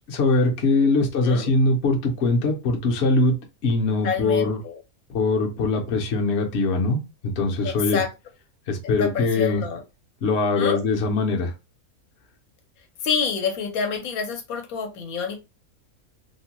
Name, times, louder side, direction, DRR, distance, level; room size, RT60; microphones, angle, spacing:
voice 1, 0.1-4.6 5.1-8.0 8.7-9.6 10.2-11.5, left 3 dB, 55° left, 0.9 m, -22 dB
voice 2, 4.0-4.8 7.6-8.1 9.0-9.8 10.5-10.8 13.0-15.4, left 6 dB, 75° left, 1.1 m, -27 dB
2.7 x 2.2 x 2.9 m
omnidirectional pair, 1.5 m